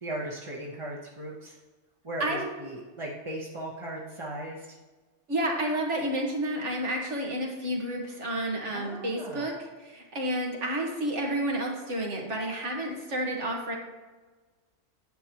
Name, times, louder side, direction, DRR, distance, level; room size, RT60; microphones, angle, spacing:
voice 1, 0.0-1.6 2.0-4.7 8.7-9.5, right 1 dB, 25° right, -4 dB, 1.0 m, -37 dB
voice 2, 5.3-9.5 9.8-13.8, right 1 dB, 70° right, 0 dB, 1.9 m, -30 dB
10.5 x 8.0 x 3.0 m, 1.3 s
omnidirectional pair, 1.3 m